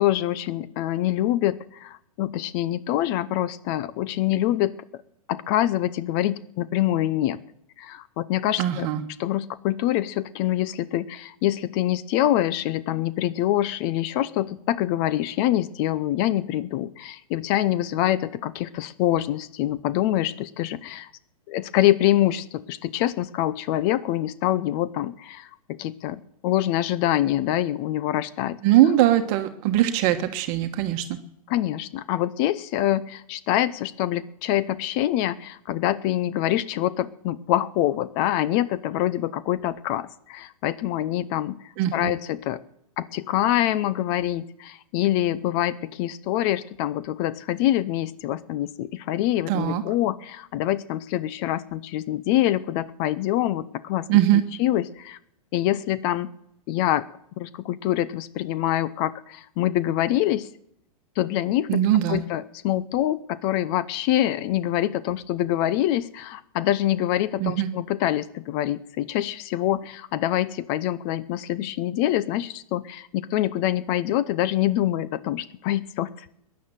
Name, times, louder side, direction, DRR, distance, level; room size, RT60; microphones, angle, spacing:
voice 1, 0.0-4.7 5.3-7.4 7.8-8.9 9.2-21.1 21.5-28.6 31.5-42.6 43.0-54.1 54.6-55.2 55.5-56.3 56.7-57.1 57.4-60.5 61.2-61.7 62.1-76.3, left 13 dB, 40° left, 17 dB, 0.7 m, -25 dB
voice 2, 8.6-9.0 28.6-31.2 41.8-42.1 49.5-49.8 54.1-54.4 61.7-62.2 67.4-67.7, right 12 dB, 40° right, 7 dB, 1.3 m, -21 dB
15.5 x 10.5 x 7.5 m, 0.74 s
hypercardioid pair, 125°, 19 cm